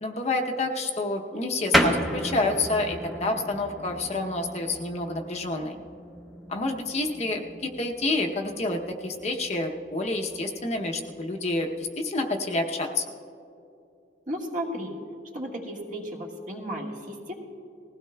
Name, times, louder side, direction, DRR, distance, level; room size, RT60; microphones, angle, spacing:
voice 1, 0.0-5.8 6.5-13.0, left 2 dB, 35° left, 2 dB, 0.7 m, -28 dB
sound 1, 1.7-11.9, equal, ahead, 0.7 m, -33 dB
voice 2, 14.3-14.9 15.3-17.3, equal, 45° right, -1 dB, 1.6 m, -34 dB
20.0 x 16.0 x 2.2 m, 2.6 s
head